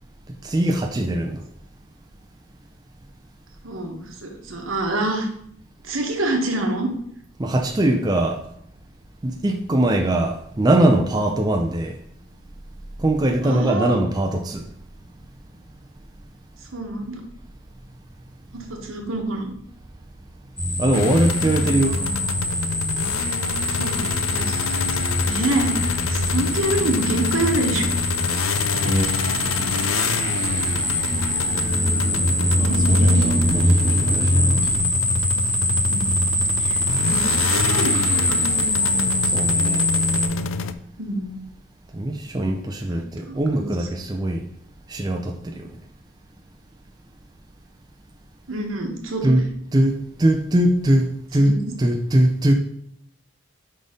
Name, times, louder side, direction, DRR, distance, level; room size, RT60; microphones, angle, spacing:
voice 1, 0.4-1.4 7.4-8.4 9.2-12.0 13.0-14.6 20.8-21.9 28.8-29.1 32.5-34.6 39.3-39.8 41.9-44.4 44.9-45.7 49.2-52.5, right 1 dB, 20° right, 0.4 m, -21 dB
voice 2, 3.6-5.3 5.8-6.9 13.4-14.0 16.7-17.2 18.5-19.5 23.7-27.9 32.5-33.3 35.9-36.2 36.6-38.7 41.0-41.4 42.9-43.9 48.5-49.4 51.4-51.7, right 1 dB, 85° right, 1.2 m, -27 dB
sound 1, 20.6-40.3, left 1 dB, 5° left, 0.8 m, -23 dB
sound 2, 20.9-40.7, left 5 dB, 80° left, 0.4 m, -27 dB
Motorcycle, 29.3-34.8, right 1 dB, 55° right, 1.2 m, -34 dB
5.3 x 4.1 x 5.0 m
head